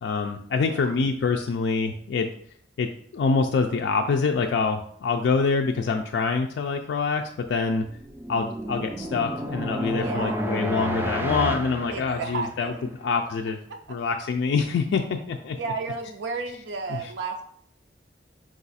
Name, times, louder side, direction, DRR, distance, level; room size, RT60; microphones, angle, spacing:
voice 1, 0.0-2.3 2.8-7.8 8.3-12.7 13.0-13.6 13.9-15.6 16.9-17.1, left 4 dB, 85° left, 4 dB, 0.3 m, -25 dB
voice 2, 0.6-0.9 10.0-10.4 11.9-12.9 15.6-17.4, right 4 dB, 85° right, 4 dB, 0.4 m, -32 dB
sound 1, 7.9-12.8, equal, 15° right, 0.3 m, -31 dB
4.7 x 2.4 x 4.0 m, 0.63 s
head